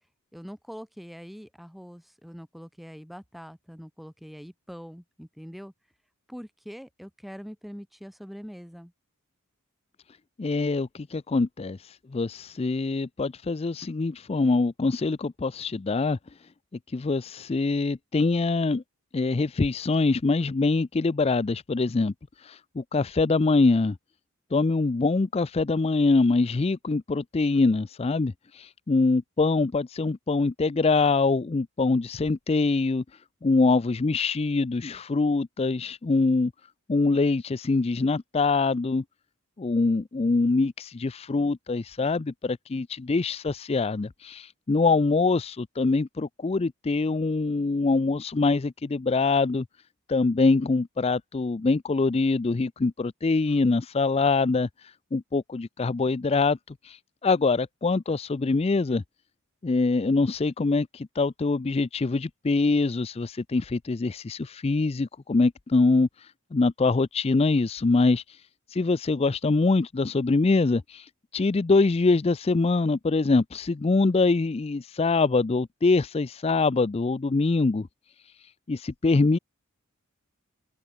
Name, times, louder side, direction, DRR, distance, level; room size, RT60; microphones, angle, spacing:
voice 1, 0.3-5.7 6.3-8.9, equal, ahead, 3.6 m, -43 dB
voice 2, 10.4-16.5 16.9-18.8 19.1-24.0 24.5-36.5 36.9-39.0 39.6-49.7 50.1-59.0 59.6-77.9 78.2-79.4, left 3 dB, 25° left, 0.4 m, -24 dB
open air
head